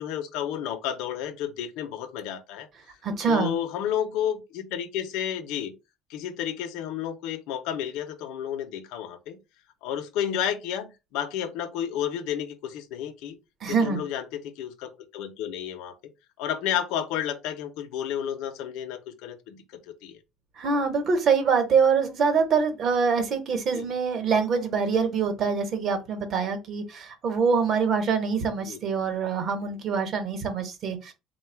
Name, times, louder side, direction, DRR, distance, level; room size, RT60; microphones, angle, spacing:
voice 1, 0.0-2.7 3.3-5.7 6.1-9.4 9.8-13.4 13.8-15.9 16.4-20.2 23.7-23.9 28.7-28.8, left 9 dB, 75° left, 0.6 m, -31 dB
voice 2, 3.0-3.6 13.6-14.0 20.6-31.1, right 5 dB, 40° right, 0.9 m, -25 dB
4.1 x 2.2 x 4.4 m
cardioid pair, 160°, 0 cm